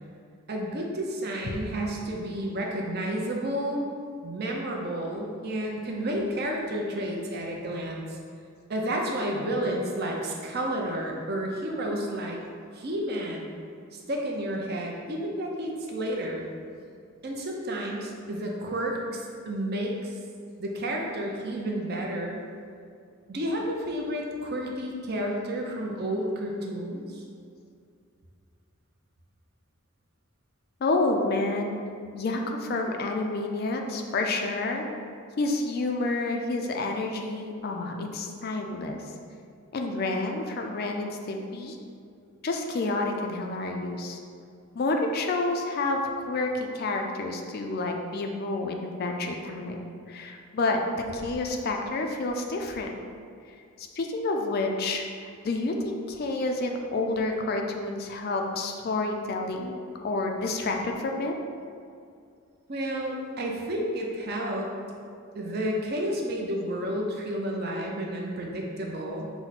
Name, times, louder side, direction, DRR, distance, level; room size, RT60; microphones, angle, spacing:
voice 1, 0.5-3.9 4.2-8.2 8.7-12.4 12.7-13.5 13.9-16.5 17.2-20.2 20.6-22.4 23.3-27.2 62.7-64.8 65.3-69.3, right 1 dB, 45° right, 0 dB, 0.5 m, -31 dB
voice 2, 30.8-31.8 32.1-34.9 35.4-39.0 39.7-41.8 42.4-44.2 44.7-52.9 53.8-61.3, left 2 dB, 45° left, 3 dB, 0.3 m, -29 dB
5.8 x 2.1 x 4.0 m, 2.3 s
head